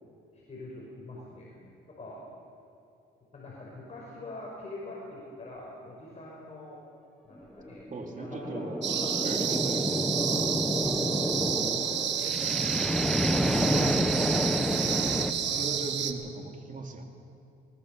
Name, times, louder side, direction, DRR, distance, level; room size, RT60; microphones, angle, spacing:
voice 1, 0.5-1.6 1.9-2.2 3.3-6.8 7.2-7.8 8.2-8.6 8.9-9.2 10.2-10.5 10.7-12.4 12.9-13.9 15.4-15.8, left 2 dB, 35° left, -4 dB, 5.6 m, -44 dB
sound 1, 7.6-15.3, equal, ahead, 1.4 m, -29 dB
voice 2, 7.9-8.8 9.1-10.4 13.7-13.8 15.5-17.0, right 3 dB, 40° right, 2 dB, 2.9 m, -39 dB
sound 2, 8.8-16.1, right 8 dB, 65° right, 1.4 m, -30 dB
21.5 x 19.5 x 6.9 m, 2.7 s
cardioid pair, 90°, 20 cm